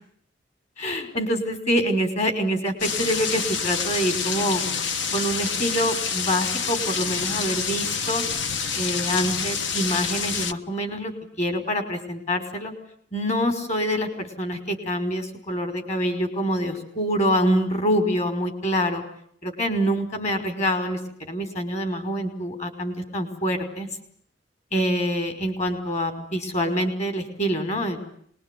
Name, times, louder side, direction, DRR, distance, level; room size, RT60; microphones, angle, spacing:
voice 1, 0.8-4.6 5.1-8.2 8.8-11.1 11.4-12.7 13.1-19.0 19.4-21.0 21.3-23.9 24.7-28.0, equal, 40° left, 7 dB, 5.4 m, -25 dB
sound 1, 2.8-10.5, left 6 dB, 70° left, 1.3 m, -27 dB
26.0 x 22.0 x 9.4 m, 0.65 s
head